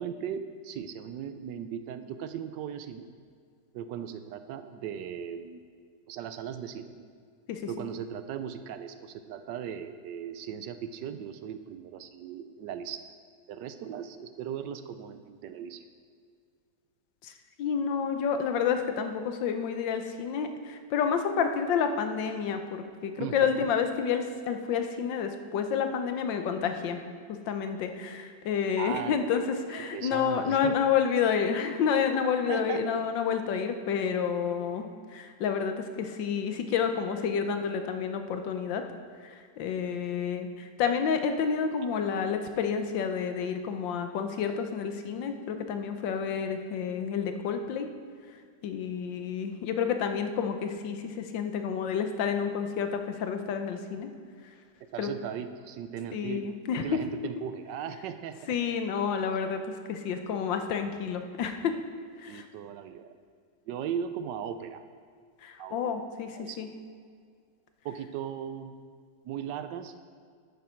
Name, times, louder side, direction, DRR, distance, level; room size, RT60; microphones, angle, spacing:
voice 1, 0.0-3.1 3.7-5.6 6.1-7.1 7.7-13.0 13.5-15.9 23.2-23.7 28.8-29.4 29.9-30.7 32.5-32.8 54.9-56.5 56.8-58.5 62.3-63.1 63.7-64.8 65.6-66.0 66.4-66.8 67.8-68.7 69.2-70.0, right 8 dB, 75° right, 10 dB, 1.2 m, -38 dB
voice 2, 17.6-27.0 27.3-34.9 35.1-38.8 39.2-47.9 48.6-54.1 55.0-55.1 56.1-56.8 58.5-61.7 62.2-62.5 65.4-66.7, left 7 dB, 80° left, 7 dB, 1.5 m, -29 dB
11.0 x 9.5 x 4.4 m, 2.1 s
omnidirectional pair, 2.0 m